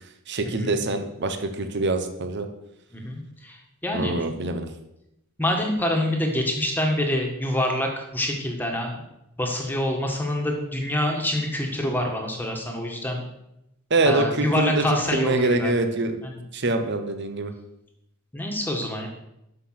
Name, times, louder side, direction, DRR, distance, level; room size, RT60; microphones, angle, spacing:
voice 1, 0.3-2.5 3.9-4.7 13.9-14.8 15.1-16.2 16.5-17.5, right 2 dB, 50° right, 7 dB, 1.0 m, -24 dB
voice 2, 2.9-4.1 5.4-9.0 9.4-13.2 14.1-15.7 16.2-16.4 18.3-19.1, left 1 dB, 10° left, 1 dB, 1.7 m, -26 dB
12.5 x 5.9 x 5.9 m, 0.85 s
head